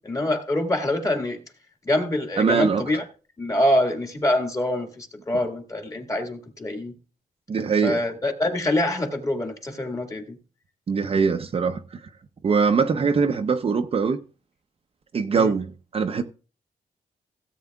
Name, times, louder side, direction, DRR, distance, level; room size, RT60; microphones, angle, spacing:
voice 1, 0.0-1.4 1.8-3.0 3.4-6.9 7.8-10.4 15.4-15.6, left 1 dB, 20° left, 1.8 m, -25 dB
voice 2, 2.4-2.9 7.5-8.0 10.9-11.8 12.4-14.2 15.1-16.2, right 5 dB, 40° right, 0.7 m, -22 dB
17.0 x 8.3 x 2.3 m
wide cardioid pair, 150°, 15 cm